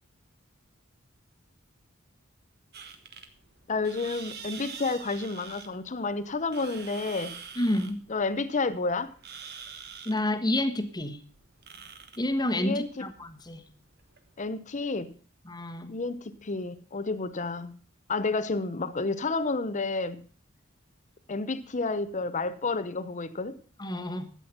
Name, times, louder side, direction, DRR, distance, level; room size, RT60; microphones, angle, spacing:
sound 1, 2.7-14.5, right 6 dB, 55° right, 1.5 m, -46 dB
voice 1, 3.7-7.4 8.1-9.1 12.5-13.0 14.4-15.2 15.9-17.8 18.1-20.2 21.3-23.6, left 3 dB, 35° left, 0.8 m, -30 dB
voice 2, 7.6-8.0 10.0-11.2 12.2-13.6 15.5-16.0 23.8-24.3, left 1 dB, 20° left, 1.2 m, -29 dB
13.0 x 8.4 x 5.7 m
head